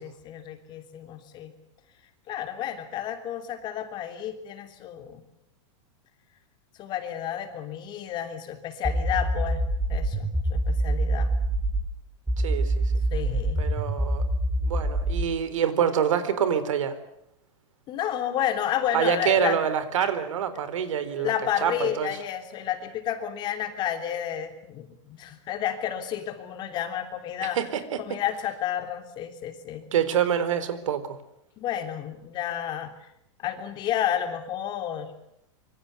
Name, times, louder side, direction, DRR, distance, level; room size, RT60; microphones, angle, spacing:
voice 1, 0.0-1.5 2.3-5.2 6.8-11.3 13.1-13.6 17.9-19.6 20.0-20.1 21.2-27.6 28.0-29.9 31.6-33.1 33.4-35.1, left 10 dB, 30° left, 7 dB, 3.3 m, -31 dB
sound 1, 8.8-11.9 12.3-15.3, right 1 dB, 5° right, 3.8 m, -25 dB
voice 2, 12.4-12.8 13.6-14.2 14.6-17.0 18.9-21.3 21.6-22.1 27.5-28.0 29.9-31.2, right 8 dB, 85° right, 12 dB, 4.1 m, -26 dB
26.5 x 24.5 x 6.8 m, 0.78 s
supercardioid pair, 160°, 16 cm